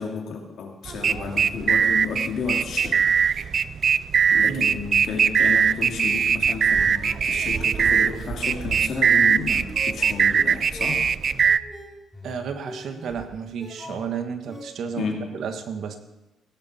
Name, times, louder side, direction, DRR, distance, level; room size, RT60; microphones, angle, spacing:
voice 1, 0.0-3.6 4.3-11.1 15.0-15.4, left 5 dB, 70° left, 1 dB, 2.9 m, -32 dB
sound 1, 0.9-11.6, right 7 dB, 50° right, 0.4 m, -21 dB
voice 2, 4.5-4.8 12.2-15.1 15.3-16.0, right 6 dB, 70° right, 7 dB, 1.6 m, -32 dB
sound 2, 9.5-14.6, equal, 5° left, 4.4 m, -42 dB
16.5 x 11.5 x 4.4 m, 1.0 s
cardioid pair, 90°, 0 cm